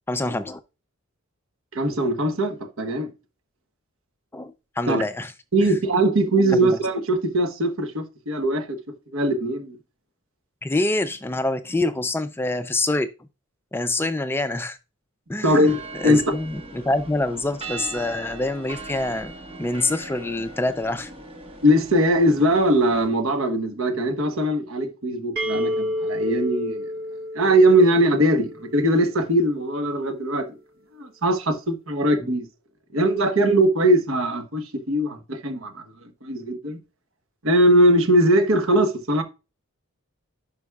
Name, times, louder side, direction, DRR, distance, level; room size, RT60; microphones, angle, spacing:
voice 1, 0.1-0.6 4.3-5.3 5.6-5.8 6.4-6.7 10.6-13.1 13.7-14.8 15.3-19.3 19.6-21.1 32.2-32.3, left 2 dB, 10° left, 0.3 m, -26 dB
voice 2, 1.7-3.1 4.9-5.0 5.5-8.8 9.1-9.8 15.4-15.8 16.0-16.2 21.6-26.8 27.3-30.5 31.0-32.5 32.9-35.8 36.2-36.8 37.4-39.2, right 1 dB, 75° right, 1.1 m, -20 dB
sound 1, 15.7-23.1, right 2 dB, 25° right, 1.3 m, -39 dB
sound 2, 25.4-29.1, left 1 dB, 45° right, 0.8 m, -30 dB
11.0 x 5.2 x 2.3 m
head